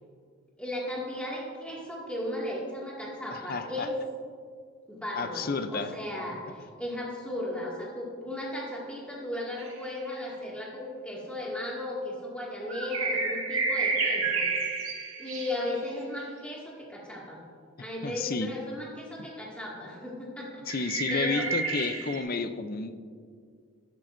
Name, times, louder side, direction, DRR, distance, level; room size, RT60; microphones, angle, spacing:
voice 1, 0.6-3.9 4.9-14.8 15.2-17.4 17.8-21.5, left 1 dB, 5° left, -5 dB, 2.1 m, -36 dB
voice 2, 3.3-3.9 5.2-5.9 18.0-18.5 20.7-23.0, left 4 dB, 40° left, 10 dB, 0.5 m, -31 dB
sound 1, 9.6-9.7 12.7-15.7 20.7-22.2, right 4 dB, 70° right, 2.0 m, -30 dB
14.0 x 11.5 x 2.6 m, 2.1 s
head